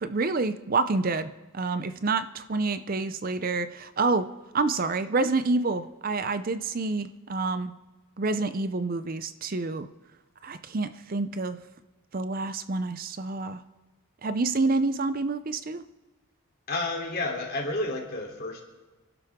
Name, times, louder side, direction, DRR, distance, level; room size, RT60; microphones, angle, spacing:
voice 1, 0.0-4.3 4.5-7.7 8.2-9.9 10.4-11.6 12.1-13.6 14.2-15.8, right 3 dB, 40° right, 11 dB, 0.5 m, -28 dB
voice 2, 16.7-18.6, left 2 dB, 45° left, -1 dB, 3.3 m, -30 dB
26.5 x 12.0 x 3.7 m, 1.2 s
head